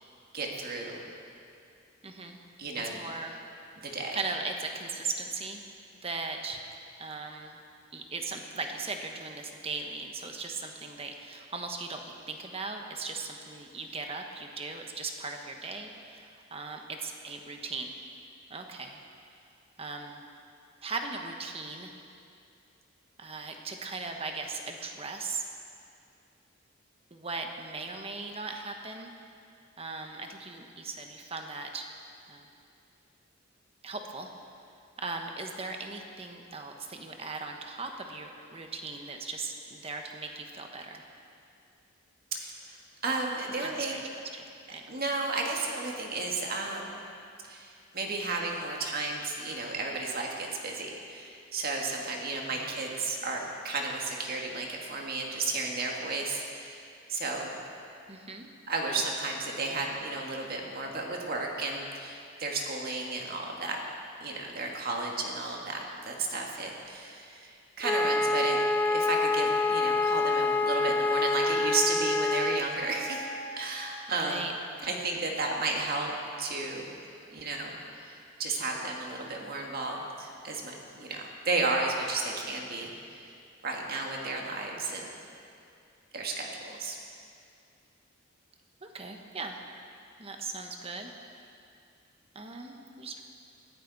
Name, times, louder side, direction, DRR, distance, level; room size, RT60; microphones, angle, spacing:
voice 1, 0.3-1.0 2.6-3.0 3.8-4.2 42.3-42.8 43.0-44.1 44.9-47.0 47.5-56.8 57.1-57.6 58.7-63.8 64.2-73.3 73.6-74.4 74.8-77.0 77.3-83.3 83.6-85.1 86.1-87.0, right 3 dB, 50° right, 0 dB, 1.9 m, -33 dB
voice 2, 2.0-2.4 2.8-3.4 4.1-5.6 6.0-6.7 7.0-7.6 7.9-12.0 12.3-17.9 18.5-19.0 19.8-20.2 20.8-21.9 23.2-25.4 27.1-29.1 29.8-31.9 32.3-32.5 33.8-34.3 35.0-41.1 43.6-44.0 44.3-45.0 52.5-52.7 58.1-58.5 58.9-59.0 74.1-74.5 74.9-75.1 88.8-89.6 90.2-91.5 92.3-93.2, right 3 dB, 30° right, 4 dB, 1.2 m, -38 dB
Wind instrument woodwind instrument, 67.8-72.6, left 3 dB, 10° left, 0.3 m, -26 dB
Wind instrument woodwind instrument 2, 69.4-73.9, left 1 dB, 15° right, 3.9 m, -41 dB
19.5 x 14.5 x 4.1 m, 2.5 s
head